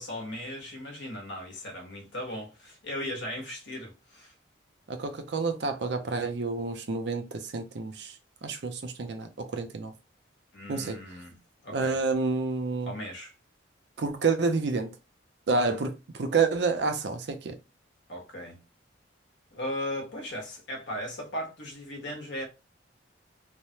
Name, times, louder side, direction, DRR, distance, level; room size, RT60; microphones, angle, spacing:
voice 1, 0.0-4.3 10.5-11.3 11.6-12.0 12.8-13.3 15.7-15.8 18.1-18.6 19.5-22.4, left 1 dB, 70° left, 1.0 m, -37 dB
voice 2, 4.9-8.2 8.4-9.9 10.7-11.0 11.7-12.9 14.0-14.9 15.5-17.6, right 4 dB, 60° right, 0.5 m, -29 dB
3.2 x 2.2 x 2.7 m
head